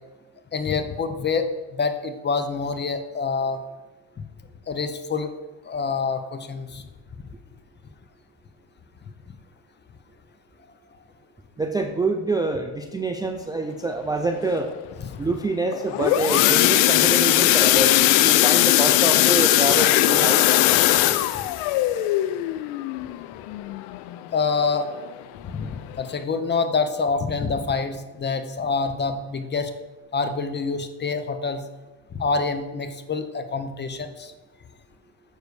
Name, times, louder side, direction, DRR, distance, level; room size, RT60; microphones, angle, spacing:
voice 1, 0.5-3.6 4.7-5.3 5.6-6.9 24.3-24.9 25.4-29.7 30.1-31.6 32.1-34.3, left 4 dB, 25° left, 9 dB, 0.7 m, -26 dB
voice 2, 11.6-14.7 15.2-20.5, right 2 dB, 10° right, 4 dB, 0.4 m, -26 dB
sound 1, 15.7-24.4 24.8-25.1 25.4-25.5 25.9-26.0, left 15 dB, 85° left, 0.6 m, -19 dB
6.8 x 6.5 x 4.8 m, 1.1 s
supercardioid pair, 105°, 43 cm